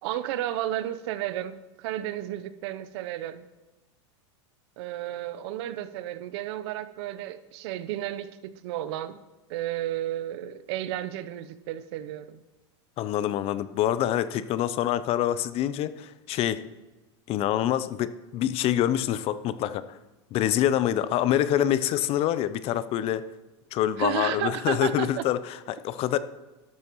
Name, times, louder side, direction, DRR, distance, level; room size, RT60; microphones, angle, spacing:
voice 1, 0.0-3.4 4.8-9.2 9.5-12.4 24.0-25.2, right 13 dB, 60° right, 13 dB, 0.8 m, -32 dB
voice 2, 13.0-16.6 17.3-20.0 20.3-23.3 23.7-26.2, left 11 dB, 40° left, 15 dB, 0.6 m, -26 dB
12.5 x 12.5 x 3.1 m, 1.1 s
hypercardioid pair, 120°, 15 cm